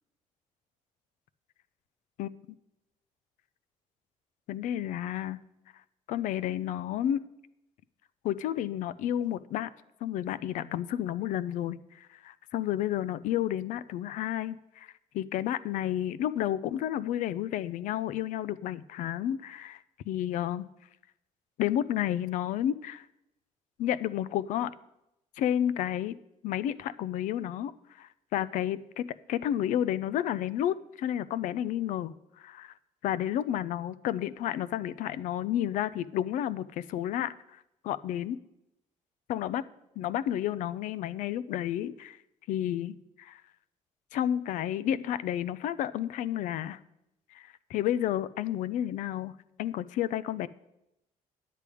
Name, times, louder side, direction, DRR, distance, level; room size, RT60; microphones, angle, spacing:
voice 1, 4.5-5.4 6.1-7.2 8.2-9.7 10.0-14.9 15.1-19.8 20.1-20.6 21.6-23.0 23.8-24.7 25.4-26.2 26.4-27.7 28.0-32.7 33.0-38.4 39.3-39.6 40.0-42.2 42.5-43.4 44.1-46.8 47.3-50.5, left 11 dB, 75° left, 17 dB, 0.4 m, -31 dB
10.0 x 8.5 x 4.9 m, 0.87 s
cardioid pair, 130°, 13 cm